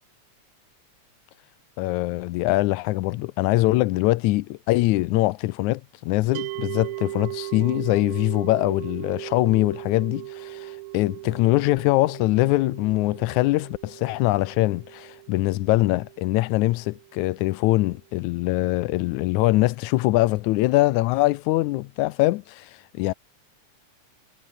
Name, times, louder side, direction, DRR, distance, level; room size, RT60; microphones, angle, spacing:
voice 1, 1.8-23.1, left 19 dB, 85° left, 2.0 m, -23 dB
sound 1, 6.3-17.5, right 19 dB, 85° right, 2.0 m, -38 dB
omnidirectional pair, 3.4 m